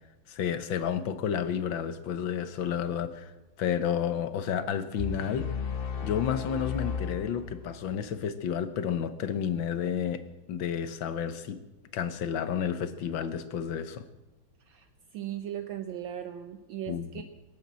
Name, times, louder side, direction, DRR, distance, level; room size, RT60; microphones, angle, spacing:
voice 1, 0.3-3.3 3.6-5.5 6.0-10.2 10.5-11.6 11.9-14.1 16.9-17.2, left 8 dB, 70° left, 11 dB, 1.7 m, -31 dB
sound 1, 5.0-7.9, left 6 dB, 45° left, 0.7 m, -34 dB
voice 2, 14.7-17.2, right 11 dB, 70° right, 8 dB, 1.5 m, -38 dB
22.0 x 8.5 x 7.6 m, 1.0 s
omnidirectional pair, 2.3 m